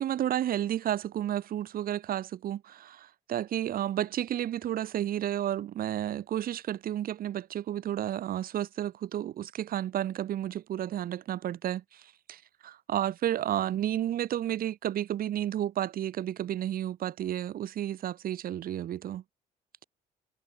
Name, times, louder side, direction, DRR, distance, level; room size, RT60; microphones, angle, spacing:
voice 1, 0.0-19.2, right 11 dB, 60° right, 2.4 m, -32 dB
cardioid pair, 110°, 17 cm